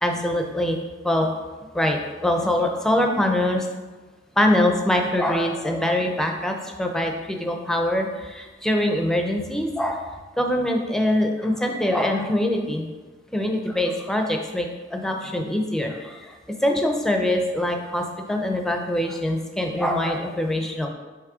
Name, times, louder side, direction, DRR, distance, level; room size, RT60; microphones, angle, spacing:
voice 1, 0.0-0.8 1.0-1.3 1.7-3.7 4.4-10.0 10.4-12.9 13.3-16.3 16.6-20.9, left 1 dB, 5° left, 3 dB, 0.6 m, -23 dB
7.2 x 3.1 x 4.9 m, 1.3 s
head